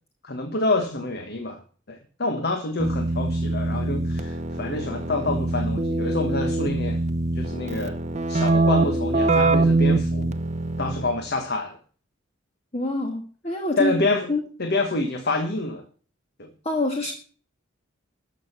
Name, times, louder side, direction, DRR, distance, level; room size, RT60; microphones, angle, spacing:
voice 1, 0.2-1.6 1.9-7.0 7.3-7.9 8.3-10.3 10.8-11.8 13.8-14.3 14.6-15.8 16.4-16.5, left 2 dB, 55° left, 6 dB, 1.4 m, -27 dB
Keyboard (musical), 2.8-11.2, right 2 dB, 35° right, 0.9 m, -24 dB
voice 2, 12.7-13.9 14.3-14.4 16.6-17.1, left 1 dB, 30° left, 2 dB, 1.6 m, -25 dB
13.5 x 6.5 x 7.4 m, 0.42 s
head